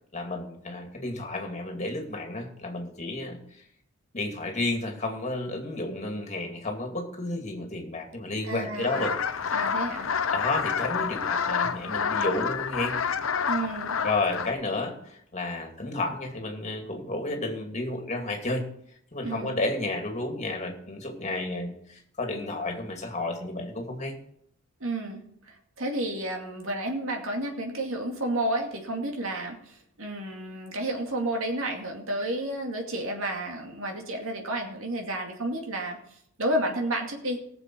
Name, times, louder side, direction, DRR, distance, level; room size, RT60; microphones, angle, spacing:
voice 1, 0.1-3.4 4.1-9.1 10.3-13.0 14.0-18.6 19.1-24.1, left 2 dB, 35° left, 3 dB, 2.3 m, -31 dB
voice 2, 8.4-9.1 9.5-10.1 13.5-14.0 19.2-19.5 24.8-37.4, right 1 dB, 70° right, 2 dB, 2.5 m, -31 dB
sound 1, 8.8-14.5, left 6 dB, 70° left, 0.7 m, -28 dB
18.5 x 7.1 x 4.6 m, 0.70 s
head